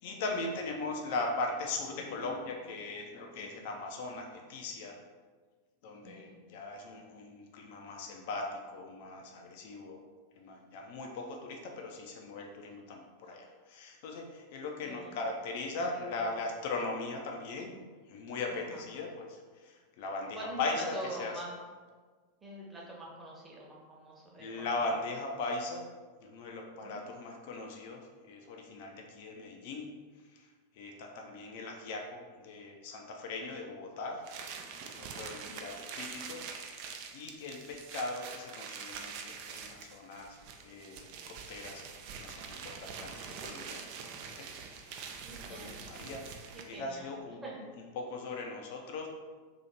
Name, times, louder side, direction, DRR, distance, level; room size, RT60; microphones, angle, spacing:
voice 1, 0.0-5.0 5.8-10.1 10.4-21.4 24.4-25.9 26.2-30.0 30.3-30.5 30.7-34.2 34.8-43.9 44.4-45.1 45.5-47.4 47.9-49.1, left 3 dB, 50° left, 2 dB, 0.4 m, -39 dB
voice 2, 6.0-6.4 14.8-15.1 15.7-16.4 18.5-18.8 20.3-21.5 22.4-24.8 26.8-27.0 35.2-35.5 45.2-45.9 46.5-47.1 47.4-47.6, right 1 dB, 15° right, -4 dB, 0.9 m, -45 dB
sound 1, 34.2-46.8, right 6 dB, 45° right, 0.4 m, -45 dB
2.8 x 2.8 x 3.9 m, 1.4 s
figure-of-eight pair, 90°, 0 cm